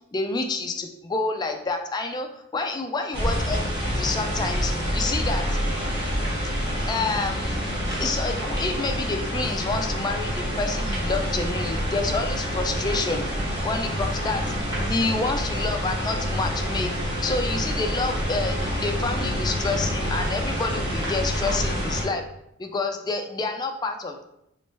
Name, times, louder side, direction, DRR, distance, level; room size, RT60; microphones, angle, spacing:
voice 1, 0.1-2.3 2.5-5.6 6.9-7.6 8.0-13.3 13.6-14.5 14.9-16.9 17.2-22.2 22.6-24.2, left 3 dB, 20° left, 4 dB, 0.3 m, -28 dB
sound 1, 3.1-22.0, equal, 20° right, 1.0 m, -27 dB
3.2 x 3.0 x 3.2 m, 0.78 s
head